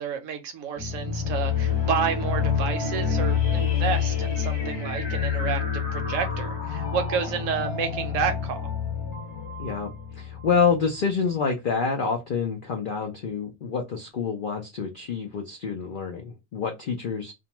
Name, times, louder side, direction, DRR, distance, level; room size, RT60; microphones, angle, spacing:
voice 1, 0.0-8.7, right 6 dB, 70° right, 0.9 m, -30 dB
sound 1, 0.8-11.0, left 7 dB, 15° left, 0.9 m, -28 dB
voice 2, 9.6-17.3, left 5 dB, 80° left, 0.4 m, -27 dB
2.6 x 2.1 x 2.9 m
omnidirectional pair, 1.5 m